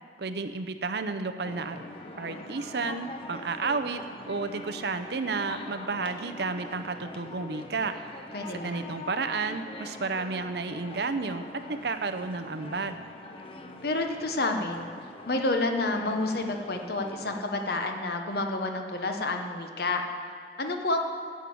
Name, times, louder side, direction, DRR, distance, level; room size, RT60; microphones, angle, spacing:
voice 1, 0.2-1.8 2.2-4.0 4.3-7.9 8.5-13.0, right 4 dB, 60° right, 9 dB, 0.7 m, -32 dB
sound 1, 1.4-17.4, left 2 dB, 30° left, 0.9 m, -44 dB
voice 2, 8.3-8.8 13.8-14.9 15.3-20.0 20.6-21.0, left 2 dB, 55° left, 4 dB, 1.1 m, -29 dB
10.0 x 7.3 x 8.5 m, 2.4 s
head